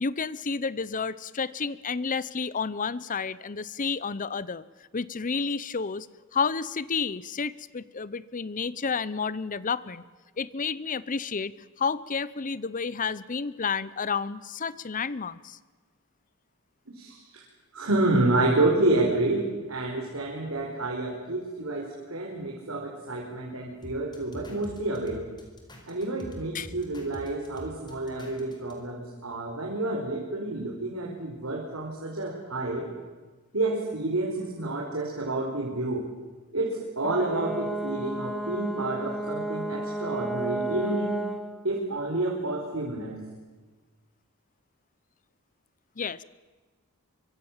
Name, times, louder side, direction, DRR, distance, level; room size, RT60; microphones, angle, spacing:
voice 1, 0.0-4.6 4.9-6.1 6.3-10.0 10.4-15.6 26.5-26.7 46.0-46.2, left 5 dB, 35° left, 19 dB, 0.7 m, -31 dB
voice 2, 16.9-17.4 17.7-25.3 25.9-32.9 33.5-36.0 36.5-41.2 41.6-43.2, right 2 dB, 65° right, -2 dB, 4.5 m, -29 dB
sound 1, 23.8-28.7, equal, 20° left, 4.8 m, -45 dB
Brass instrument, 37.0-41.5, right 1 dB, ahead, 2.6 m, -32 dB
25.0 x 24.0 x 7.4 m, 1.3 s
head